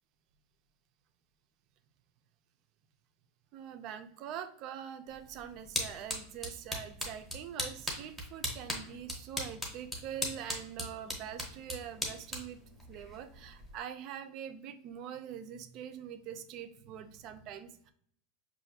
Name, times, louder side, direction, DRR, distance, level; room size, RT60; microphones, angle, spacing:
voice 1, 3.5-12.6 12.9-17.9, right 9 dB, 35° right, 9 dB, 0.3 m, -44 dB
sound 1, 5.1-13.8, equal, 5° left, 0.7 m, -40 dB
5.7 x 2.5 x 2.7 m, 0.63 s
supercardioid pair, 175°, 0 cm